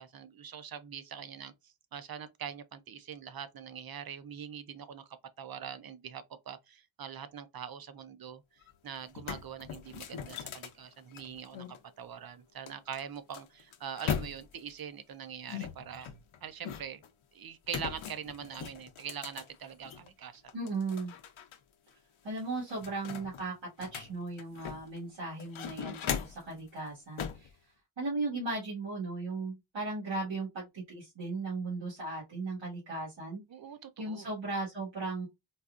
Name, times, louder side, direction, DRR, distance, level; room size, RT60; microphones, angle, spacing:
voice 1, 0.0-8.4 8.8-11.7 12.0-16.1 16.4-17.0 17.3-20.4 33.5-34.3, right 8 dB, 50° right, 0.6 m, -43 dB
sound 1, 8.6-8.7 9.0-11.8 12.7-14.7 15.5-17.1 17.7-20.1 20.5-21.6 21.9-22.0 22.4-25.0 25.4-26.5 27.2-27.5, left 8 dB, 90° left, 0.6 m, -39 dB
voice 2, 20.5-21.1 22.2-27.5 28.0-33.4 34.0-35.3, right 3 dB, 75° right, 1.6 m, -37 dB
4.0 x 2.3 x 2.4 m
wide cardioid pair, 100°, 46 cm